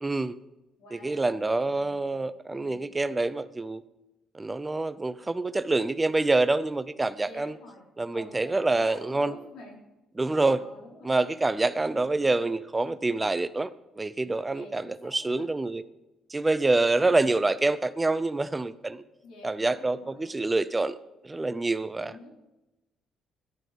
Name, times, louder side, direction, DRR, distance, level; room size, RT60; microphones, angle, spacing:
voice 1, 0.0-0.3 0.9-3.8 4.3-7.5 8.0-9.3 10.2-10.6 11.0-13.7 14.0-15.8 16.3-19.0 19.4-21.0 21.2-22.1, right 2 dB, 10° right, 13 dB, 0.5 m, -26 dB
voice 2, 0.8-2.2 2.5-2.8 7.2-7.8 8.1-9.8 10.4-11.3 11.8-12.4 14.5-15.5 16.9-17.2 19.2-20.2 22.0-22.3, left 2 dB, 70° left, -1 dB, 4.1 m, -49 dB
13.0 x 11.5 x 5.2 m, 1.0 s
cardioid pair, 175°, 0 cm